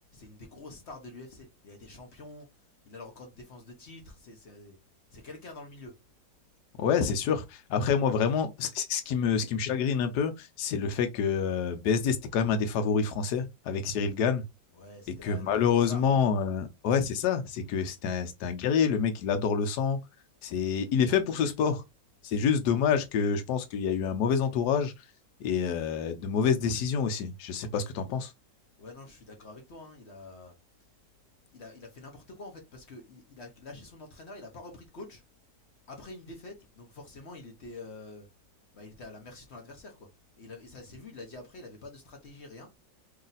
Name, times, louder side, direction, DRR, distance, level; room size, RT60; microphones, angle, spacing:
voice 1, 0.1-2.5 2.9-4.8 5.1-5.9 14.7-15.5 15.8-16.0 28.8-30.5 31.5-35.2 35.9-38.3 38.7-40.0 40.4-42.7, left 2 dB, 50° left, 0.9 m, -46 dB
voice 2, 6.8-14.4 15.1-20.0 20.4-21.8 22.2-24.9 25.4-28.3, left 6 dB, 70° left, 1.2 m, -27 dB
3.1 x 2.8 x 3.9 m
omnidirectional pair, 1.9 m